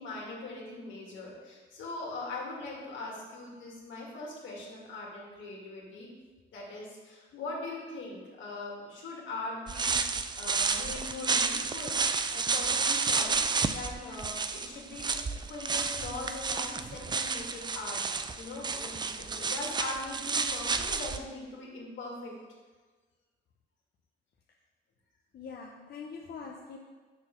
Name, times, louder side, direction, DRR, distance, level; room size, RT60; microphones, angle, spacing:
voice 1, 0.0-6.1 6.5-15.2 15.5-22.3, left 2 dB, 75° left, -3 dB, 2.2 m, -41 dB
sound 1, 9.7-21.2, right 4 dB, 20° right, 0.4 m, -31 dB
voice 2, 25.3-26.8, left 5 dB, 50° left, 0 dB, 0.7 m, -43 dB
6.6 x 4.1 x 6.0 m, 1.4 s
cardioid pair, 90°, 20 cm